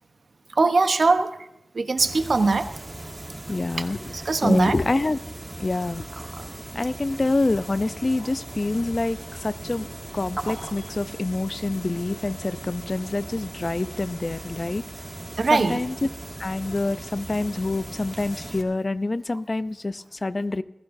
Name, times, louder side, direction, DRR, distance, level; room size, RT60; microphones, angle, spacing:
voice 1, 0.5-1.4 1.7-2.7 4.1-4.8 15.4-15.8, right 3 dB, 65° right, 9 dB, 0.9 m, -21 dB
sound 1, 2.0-18.6, right 1 dB, 30° right, 2.1 m, -38 dB
voice 2, 3.5-4.1 4.4-5.2 5.6-6.0 6.7-9.9 10.1-14.8 15.5-15.9 16.4-20.6, left 2 dB, 40° left, 13 dB, 0.5 m, -26 dB
27.0 x 16.0 x 2.6 m, 0.89 s
wide cardioid pair, 80°, 0 cm